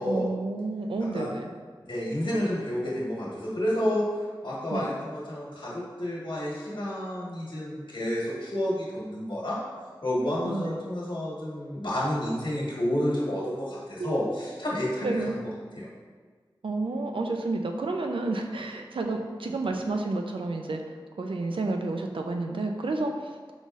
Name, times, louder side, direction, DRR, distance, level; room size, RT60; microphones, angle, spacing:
voice 1, 0.0-1.5 4.7-4.9 10.4-10.7 14.0-14.2 15.0-15.3 16.6-20.8 21.2-23.1, right 2 dB, 85° right, 3 dB, 0.4 m, -30 dB
voice 2, 1.8-9.6 10.0-15.5 15.7-15.9, left 1 dB, 65° left, -6 dB, 1.3 m, -30 dB
5.2 x 3.9 x 2.4 m, 1.5 s
wide cardioid pair, 65°, 9 cm